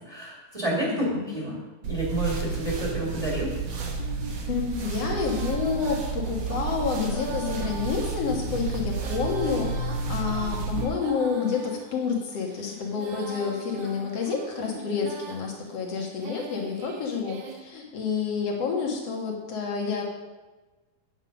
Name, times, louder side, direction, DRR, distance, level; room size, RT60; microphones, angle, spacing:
voice 1, 0.1-1.6 1.9-3.5, right 1 dB, 10° right, -4 dB, 1.9 m, -29 dB
voice 2, 0.8-1.3 4.5-20.0, left 5 dB, 50° left, 0 dB, 2.3 m, -29 dB
sound 1, 1.8-10.8, right 4 dB, 55° right, 2.1 m, -31 dB
Female singing, 4.0-17.6, right 5 dB, 80° right, 3.0 m, -42 dB
9.6 x 8.7 x 5.3 m, 1.2 s
omnidirectional pair, 4.1 m